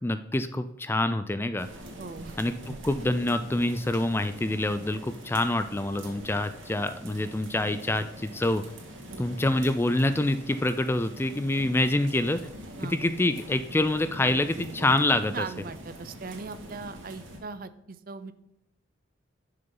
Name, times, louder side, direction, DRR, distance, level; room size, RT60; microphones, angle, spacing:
voice 1, 0.0-1.7 2.4-8.6 9.2-12.4 12.8-15.5, left 1 dB, 10° left, 11 dB, 0.3 m, -26 dB
sound 1, 1.6-17.4, right 1 dB, 80° right, 2.1 m, -44 dB
voice 2, 2.0-2.4 2.6-2.8 9.1-9.3 12.8-13.0 15.3-18.3, right 4 dB, 45° right, 13 dB, 0.6 m, -39 dB
10.5 x 6.6 x 3.9 m, 0.86 s
head